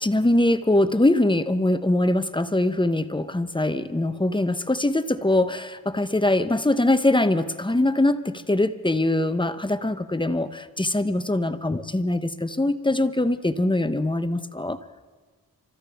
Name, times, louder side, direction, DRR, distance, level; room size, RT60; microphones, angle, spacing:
voice 1, 0.0-14.8, left 1 dB, 15° left, 11 dB, 0.9 m, -22 dB
27.5 x 13.5 x 3.5 m, 1.4 s
cardioid pair, 50°, 36 cm